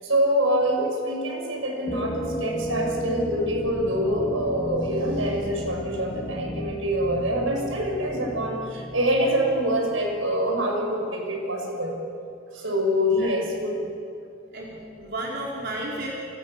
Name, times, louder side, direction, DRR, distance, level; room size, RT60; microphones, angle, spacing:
voice 1, 0.0-12.0 12.5-13.9, equal, 75° right, 1 dB, 6.5 m, -25 dB
sound 1, 1.9-10.5, equal, 20° left, 2.0 m, -34 dB
voice 2, 13.0-13.3 14.5-16.1, right 1 dB, 55° right, -4 dB, 4.3 m, -33 dB
28.5 x 28.0 x 6.8 m, 2.6 s
head